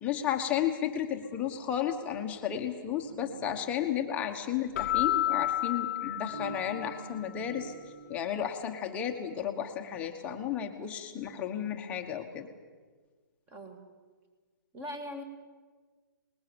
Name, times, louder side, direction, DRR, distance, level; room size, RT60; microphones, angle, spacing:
voice 1, 0.0-7.7 8.1-12.5, left 9 dB, 10° left, 4 dB, 1.3 m, -33 dB
sound 1, 1.6-8.4, right 4 dB, 45° right, 3.4 m, -49 dB
Keyboard (musical), 4.8-7.2, left 13 dB, 30° left, 1.1 m, -31 dB
voice 2, 13.5-13.8 14.7-15.2, left 1 dB, 15° right, 5 dB, 2.3 m, -40 dB
25.5 x 20.5 x 7.1 m, 1.4 s
hypercardioid pair, 170°, 12 cm